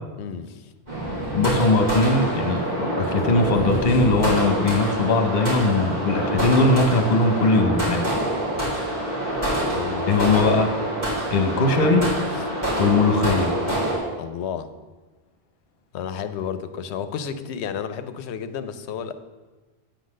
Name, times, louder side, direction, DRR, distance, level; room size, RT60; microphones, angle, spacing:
voice 1, 0.2-0.7 9.5-10.1 14.2-14.7 15.9-19.1, left 7 dB, 90° left, 11 dB, 0.9 m, -32 dB
sound 1, 0.9-14.0, right 1 dB, 45° right, 2.8 m, -26 dB
voice 2, 1.3-8.1 10.1-10.7 11.3-12.1 12.8-13.5, left 3 dB, 65° left, 4 dB, 1.2 m, -20 dB
8.7 x 4.0 x 6.3 m, 1.3 s
omnidirectional pair, 1.1 m